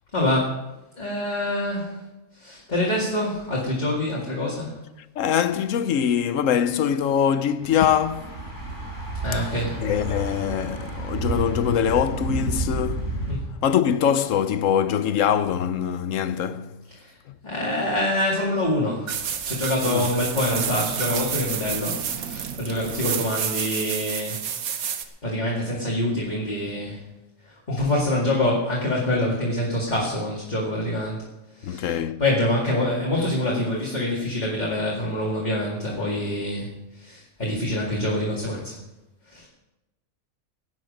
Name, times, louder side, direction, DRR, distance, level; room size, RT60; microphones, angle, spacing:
voice 1, 0.1-0.6 1.0-2.0 2.4-4.8 9.2-9.8 13.3-13.4 16.9-17.1 17.4-24.4 24.7-24.9 25.2-27.0 27.5-31.2 31.6-38.7 39.3-39.5, left 1 dB, 30° left, 2.2 m, -26 dB
voice 2, 5.2-8.3 9.8-13.1 13.6-16.7 19.9-20.1 27.7-27.8 31.6-32.2, left 8 dB, 70° left, 1.0 m, -23 dB
Thunder / Bicycle, 7.6-13.4, right 2 dB, 55° right, 4.7 m, -30 dB
sound 1, 19.1-25.1, right 8 dB, 80° right, 1.4 m, -29 dB
16.5 x 9.7 x 5.2 m
omnidirectional pair, 1.5 m